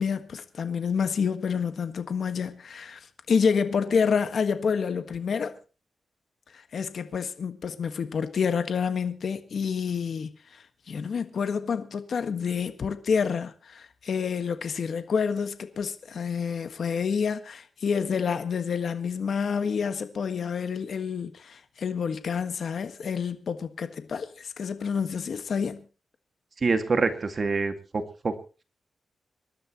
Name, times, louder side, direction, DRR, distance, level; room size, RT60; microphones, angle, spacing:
voice 1, 0.0-3.0 3.3-5.5 6.5-25.8, left 6 dB, 65° left, 1.5 m, -28 dB
voice 2, 26.6-28.4, right 4 dB, 45° right, 2.1 m, -26 dB
26.5 x 12.5 x 3.0 m
cardioid pair, 95°, 0 cm